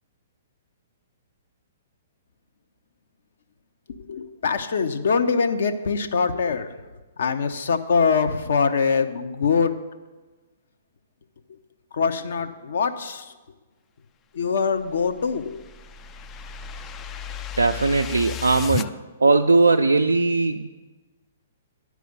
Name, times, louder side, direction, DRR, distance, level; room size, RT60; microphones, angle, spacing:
voice 1, 4.1-6.7 7.2-9.8 11.9-13.3 14.3-15.6, left 5 dB, 65° left, 8 dB, 0.7 m, -23 dB
sound 1, 14.9-18.9, left 9 dB, 25° left, 0.3 m, -34 dB
voice 2, 17.6-18.9 19.2-20.7, right 3 dB, 80° right, 4 dB, 0.4 m, -19 dB
9.9 x 4.8 x 8.0 m, 1.2 s
figure-of-eight pair, 120°, 0 cm